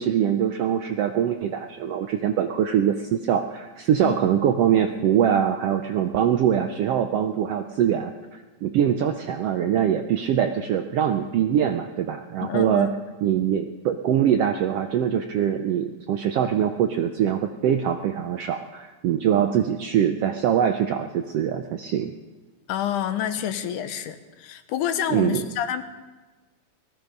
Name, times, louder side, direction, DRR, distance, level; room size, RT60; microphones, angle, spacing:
voice 1, 0.0-8.1 8.6-12.9 13.2-22.1 25.1-25.4, right 9 dB, 80° right, 6 dB, 1.4 m, -23 dB
voice 2, 12.4-12.9 22.7-25.8, left 10 dB, 85° left, 9 dB, 2.6 m, -28 dB
18.5 x 14.5 x 5.3 m, 1.3 s
omnidirectional pair, 3.6 m